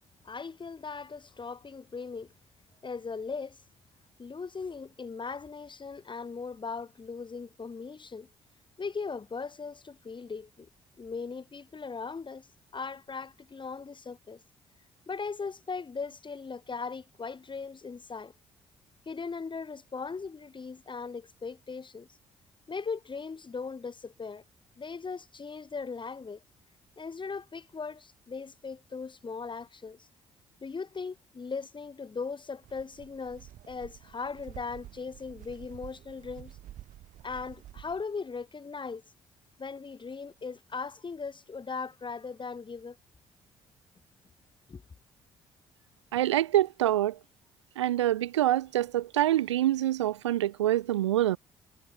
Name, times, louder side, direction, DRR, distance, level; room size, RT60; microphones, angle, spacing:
voice 1, 0.2-2.3 2.8-3.6 4.2-8.3 8.8-10.7 11.0-12.5 12.7-14.4 15.1-18.3 19.0-22.1 22.7-24.4 24.8-26.4 27.0-30.1 30.6-36.6 37.2-39.0 39.6-43.0 44.7-44.8, left 5 dB, 35° left, 5.0 m, -38 dB
sound 1, 32.6-38.0, right 13 dB, 60° right, 2.7 m, -49 dB
voice 2, 46.1-47.2 47.8-51.4, right 13 dB, 80° right, 0.8 m, -26 dB
figure-of-eight pair, 45°, 15 cm